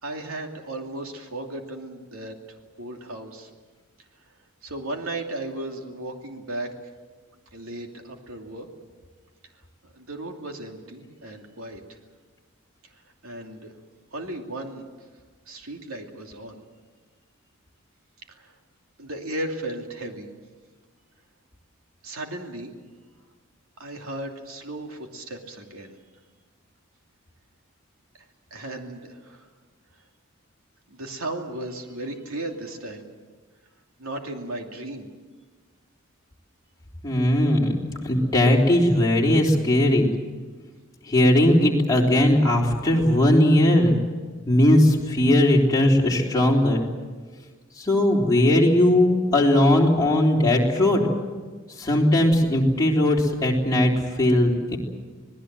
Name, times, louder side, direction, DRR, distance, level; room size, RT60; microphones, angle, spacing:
voice 1, 0.0-2.3 2.8-3.5 4.6-6.7 7.5-8.7 9.8-11.8 13.2-13.7 14.1-14.9 15.5-16.6 18.3-18.5 19.0-20.3 22.0-22.7 23.8-26.0 28.2-28.3 28.5-29.5 30.9-33.0 34.0-35.1, right 1 dB, 85° right, 3 dB, 2.7 m, -35 dB
voice 2, 37.0-40.1 41.1-43.9 44.5-46.8 47.8-51.0 51.8-54.8, left 1 dB, 15° left, -2 dB, 3.6 m, -19 dB
26.5 x 19.0 x 7.6 m, 1.4 s
head